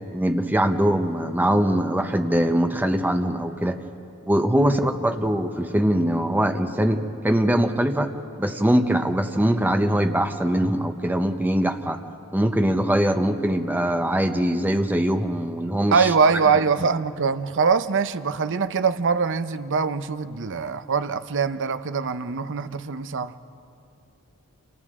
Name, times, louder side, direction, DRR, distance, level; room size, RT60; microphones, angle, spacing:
voice 1, 0.1-3.8 4.3-12.0 12.3-16.1, right 1 dB, 10° right, 6 dB, 0.8 m, -22 dB
voice 2, 15.9-23.3, right 5 dB, 60° right, 11 dB, 0.7 m, -23 dB
29.0 x 28.5 x 3.7 m, 2.7 s
head